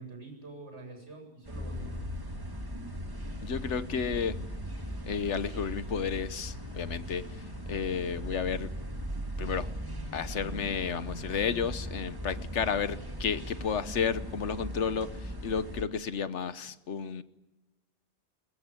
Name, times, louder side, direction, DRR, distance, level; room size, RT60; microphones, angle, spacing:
voice 1, 0.0-2.0, right 3 dB, 75° right, 3 dB, 8.4 m, -46 dB
sound 1, 1.4-15.8, equal, 20° right, 2.3 m, -38 dB
voice 2, 3.4-4.4 5.0-8.7 9.4-9.7 10.1-17.2, left 6 dB, 85° left, 13 dB, 1.3 m, -32 dB
21.5 x 21.0 x 9.0 m, 1.1 s
omnidirectional pair, 1.2 m